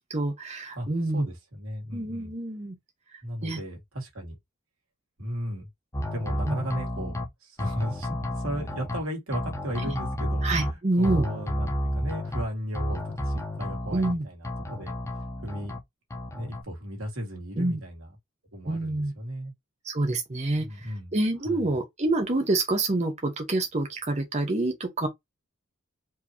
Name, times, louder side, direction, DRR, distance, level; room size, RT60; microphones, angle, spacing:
voice 1, 0.0-1.3 1.9-2.8 3.1-3.6 6.4-6.6 10.4-11.3 13.9-14.2 17.6-17.8 18.7-19.1 19.8-25.1, right 2 dB, 35° right, 0.9 m, -27 dB
voice 2, 1.1-2.3 3.2-4.4 5.2-5.7 6.1-14.9 15.4-15.8 16.3-18.1 18.5-19.5 20.5-21.2 21.4-21.8, equal, 85° right, 2.3 m, -35 dB
sound 1, 5.9-7.3 7.6-9.0 9.3-10.7 11.0-12.4 12.7-14.1 14.4-15.8 16.1-16.6, equal, 15° left, 1.0 m, -31 dB
4.7 x 3.0 x 2.9 m
head